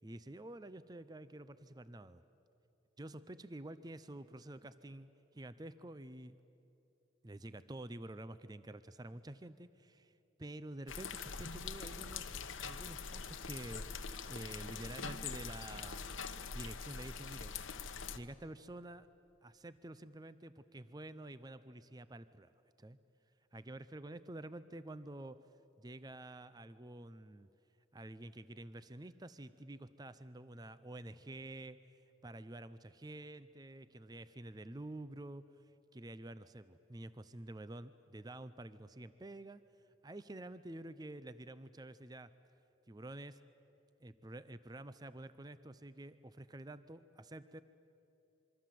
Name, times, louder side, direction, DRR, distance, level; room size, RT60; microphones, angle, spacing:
voice 1, 0.0-2.2 3.0-6.4 7.2-12.3 12.6-16.0 16.5-17.6 18.1-19.1 19.4-22.5 22.8-23.0 23.5-25.4 25.8-27.5 27.9-35.5 35.9-39.6 40.0-42.3 42.9-43.4 44.0-47.6, right 1 dB, 20° right, 13 dB, 0.5 m, -49 dB
sound 1, 10.9-18.2, left 5 dB, 85° left, 1.1 m, -44 dB
26.0 x 24.0 x 7.6 m, 2.8 s
head